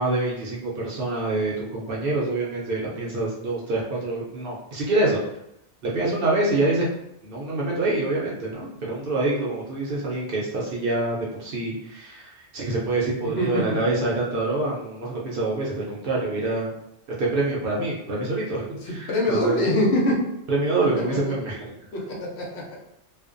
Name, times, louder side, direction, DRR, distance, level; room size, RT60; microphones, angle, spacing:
voice 1, 0.0-5.2 5.8-6.9 7.2-16.7 17.2-19.7 20.5-21.7, right 2 dB, 60° right, -4 dB, 0.6 m, -26 dB
voice 2, 13.2-13.6 19.1-20.2 21.9-22.8, left 1 dB, 70° left, -2 dB, 0.9 m, -24 dB
2.4 x 2.2 x 2.4 m, 0.80 s
omnidirectional pair, 1.2 m